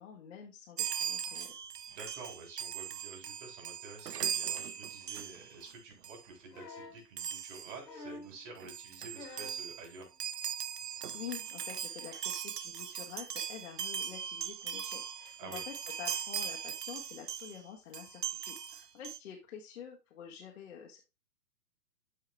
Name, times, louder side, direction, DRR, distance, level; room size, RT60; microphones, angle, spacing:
voice 1, 0.0-1.5 10.9-21.0, left 8 dB, 50° left, 0 dB, 1.8 m, -48 dB
Chime, 0.8-5.7 6.0-6.3 7.2-7.8 8.3-8.4 8.6-17.6 17.9-19.2, right 8 dB, 75° right, 0.7 m, -39 dB
voice 2, 1.9-10.1 15.4-15.6, right 3 dB, 30° right, 1 dB, 3.7 m, -49 dB
sound 1, 6.5-7.0 7.8-8.4 9.1-9.7 10.9-11.0, left 2 dB, 85° left, 1.8 m, -47 dB
12.5 x 4.8 x 2.2 m, 0.25 s
figure-of-eight pair, 125°, 49 cm